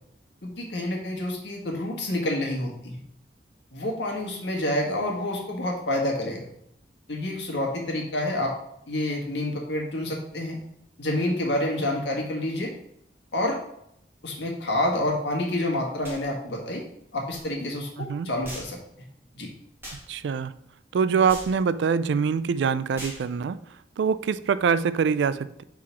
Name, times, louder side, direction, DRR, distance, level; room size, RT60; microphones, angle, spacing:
voice 1, 0.4-3.0 3.7-6.4 7.1-8.5 8.9-10.6 11.0-12.7 13.3-13.6 14.2-16.8 17.1-18.8 19.3-19.5, left 1 dB, 70° left, 0 dB, 1.6 m, -28 dB
sound 1, 16.0-16.2 17.3-17.4 18.4-18.7 19.8-20.0 21.3-21.5 22.9-23.2, equal, 15° right, 1.7 m, -39 dB
voice 2, 18.0-18.3 19.9-20.5 20.9-25.6, right 6 dB, 75° right, 15 dB, 0.3 m, -25 dB
4.7 x 3.8 x 5.7 m, 0.75 s
head